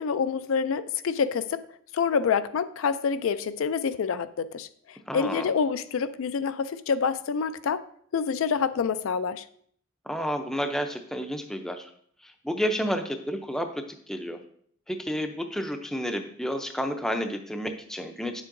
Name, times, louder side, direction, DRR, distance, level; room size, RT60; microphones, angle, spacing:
voice 1, 0.0-1.6 1.9-7.8 8.1-9.4, left 6 dB, 70° left, 0.4 m, -27 dB
voice 2, 5.1-5.5 10.1-11.9 12.2-14.4 14.9-18.4, equal, ahead, 0.5 m, -31 dB
9.1 x 7.3 x 2.6 m
head